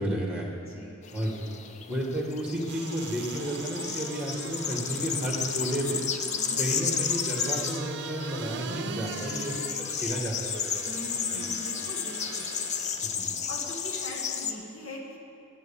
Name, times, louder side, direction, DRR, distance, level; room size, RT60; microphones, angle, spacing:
voice 1, 0.0-0.5 1.1-1.4 1.9-6.0 6.6-11.0 11.3-11.5 13.1-13.3, right 1 dB, 5° right, -1 dB, 1.7 m, -32 dB
voice 2, 0.5-1.3 6.4-6.9 10.8-12.5 13.1-13.2 13.5-15.2, left 1 dB, 65° left, -2 dB, 2.0 m, -42 dB
sound 1, 1.0-14.5, left 7 dB, 35° left, 0.5 m, -33 dB
sound 2, 2.6-13.1 13.6-13.7, right 5 dB, 55° right, 0.6 m, -41 dB
11.0 x 8.0 x 7.2 m, 2.5 s
head